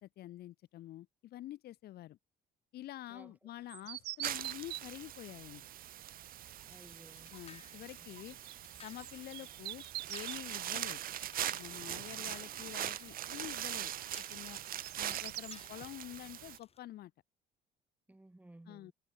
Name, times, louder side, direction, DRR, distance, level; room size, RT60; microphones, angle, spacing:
voice 1, 0.0-2.2 2.7-5.7 7.3-8.4 8.8-9.8 10.1-11.0 11.5-13.9 14.3-14.6 15.0-17.1 18.7-18.9, left 14 dB, 70° left, 2.4 m, -48 dB
sound 1, 3.7-4.8 8.3-10.6 14.5-15.6, right 17 dB, 75° right, 0.7 m, -44 dB
sound 2, 4.2-16.6, right 12 dB, 60° right, 1.1 m, -42 dB
sound 3, 6.4-16.8, left 6 dB, 35° left, 4.6 m, -60 dB
voice 2, 6.7-7.3 12.1-12.4 18.1-18.9, right 1 dB, 10° right, 5.3 m, -57 dB
cardioid pair, 110°, 17 cm